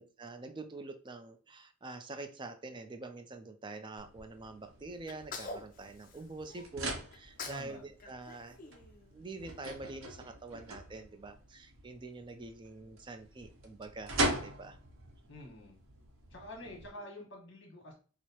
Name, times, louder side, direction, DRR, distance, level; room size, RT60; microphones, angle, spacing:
voice 1, 0.0-8.8 9.1-14.1 14.4-14.8 16.6-16.8, right 3 dB, 25° right, 8 dB, 0.4 m, -46 dB
sound 1, 4.0-16.9, right 1 dB, 80° right, 0.9 m, -41 dB
Sneeze, 5.1-6.7 7.1-7.7 8.0-9.5, left 4 dB, 45° left, 0.5 m, -46 dB
voice 2, 7.5-7.9 15.3-15.8 16.3-17.9, left 1 dB, 60° left, -1 dB, 1.3 m, -47 dB
4.6 x 2.0 x 2.8 m, 0.38 s
head